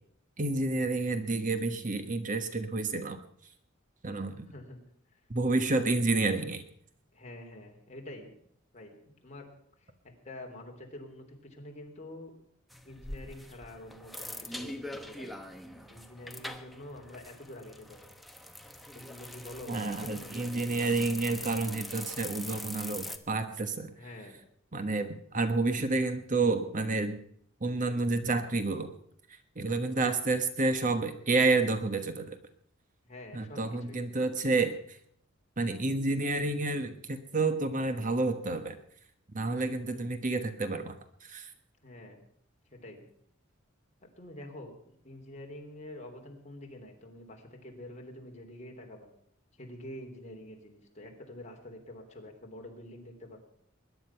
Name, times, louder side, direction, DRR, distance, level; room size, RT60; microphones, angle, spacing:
voice 1, 0.4-3.2 4.0-4.5 5.3-6.6 19.7-23.9 24.7-27.2 27.6-28.9 29.6-32.4 33.3-34.8 35.6-38.8 39.3-41.5, right 3 dB, 40° right, 9 dB, 1.3 m, -29 dB
voice 2, 4.5-4.8 5.1-5.2 7.1-8.3 8.7-9.5 9.8-9.9 10.2-12.3 12.8-18.0 18.9-20.6 23.9-24.4 33.0-34.1 39.8-40.0 41.8-42.3 42.7-43.1 44.0-49.1 49.5-53.4, left 1 dB, 35° left, 2 dB, 3.2 m, -47 dB
sound 1, 12.7-23.2, left 1 dB, ahead, 1.1 m, -43 dB
21.0 x 10.5 x 5.8 m, 0.67 s
head